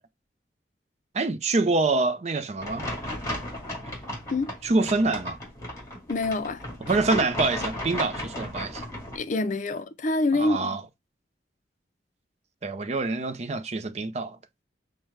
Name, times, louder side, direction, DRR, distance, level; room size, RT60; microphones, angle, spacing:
voice 1, 1.1-2.9 4.6-5.4 6.8-8.8 10.3-10.8 12.6-14.4, right 3 dB, 40° right, 0.5 m, -26 dB
sound 1, 2.6-9.2, left 1 dB, 20° left, 1.9 m, -35 dB
voice 2, 6.1-6.6 9.1-10.8, left 2 dB, 45° left, 0.4 m, -26 dB
5.9 x 2.2 x 3.2 m
head